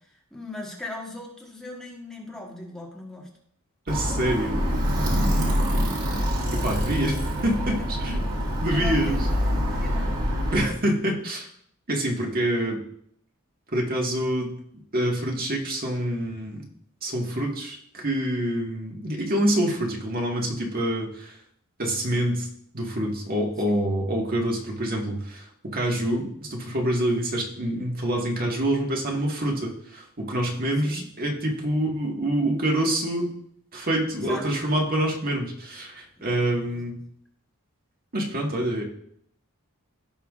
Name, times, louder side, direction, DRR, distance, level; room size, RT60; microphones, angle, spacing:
voice 1, 0.3-3.3 5.7-6.0 6.8-6.9 7.8-7.9 8.7-10.1 23.7-23.8 30.8-31.0 34.2-34.4 36.2-36.4, left 2 dB, 5° left, -2 dB, 1.3 m, -39 dB
voice 2, 3.9-4.5 6.5-7.2 7.4-8.3 8.6-9.2 10.5-11.5 11.9-12.8 13.7-14.5 14.9-16.7 17.0-21.4 21.8-22.5 22.7-33.3 33.7-37.0 38.1-38.8, right 1 dB, 45° right, -1 dB, 1.7 m, -26 dB
Alarm, 3.9-10.7, equal, 90° right, 2.4 m, -25 dB
16.0 x 5.7 x 2.5 m, 0.68 s
head